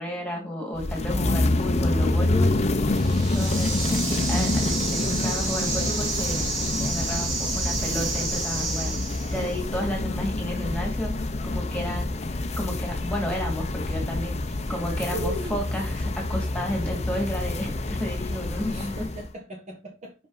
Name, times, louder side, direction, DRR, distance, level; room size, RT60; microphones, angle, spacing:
voice 1, 0.0-2.5 3.3-6.5 6.8-9.0 9.3-11.1 11.4-12.3 12.6-19.0, left 1 dB, 5° left, 2.3 m, -32 dB
sound 1, 0.7-19.3, left 2 dB, 35° left, 0.7 m, -27 dB
sound 2, 2.9-9.6, right 4 dB, 75° right, 2.8 m, -31 dB
voice 2, 15.0-15.6 18.7-20.1, right 1 dB, 35° right, 1.4 m, -36 dB
5.4 x 5.2 x 3.9 m
head